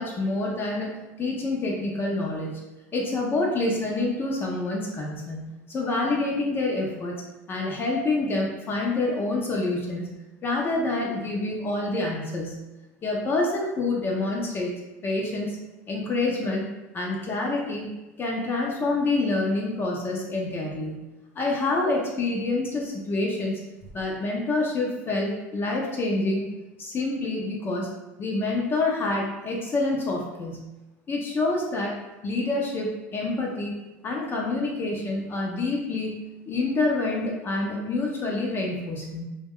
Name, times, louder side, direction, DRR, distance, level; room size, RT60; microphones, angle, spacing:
voice 1, 0.0-2.6 2.9-7.1 7.5-10.1 10.4-12.6 13.0-14.7 15.0-15.6 15.9-16.7 16.9-17.9 18.2-20.9 21.4-23.6 23.9-26.5 26.8-27.9 28.2-30.6 31.1-31.9 32.2-33.7 34.0-39.2, left 2 dB, 30° left, -2 dB, 0.5 m, -27 dB
2.2 x 2.2 x 3.5 m, 1.0 s
hypercardioid pair, 95°, 8 cm